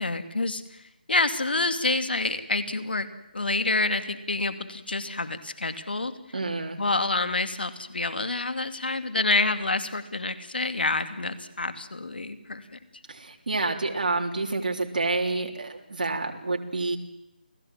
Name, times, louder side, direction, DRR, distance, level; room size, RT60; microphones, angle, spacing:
voice 1, 0.0-3.1 3.3-6.1 6.8-12.8, left 3 dB, 80° left, 9 dB, 2.6 m, -28 dB
voice 2, 6.3-6.8 13.1-17.0, right 3 dB, 60° right, 2 dB, 3.3 m, -28 dB
28.5 x 17.0 x 7.5 m, 0.93 s
figure-of-eight pair, 170°, 5 cm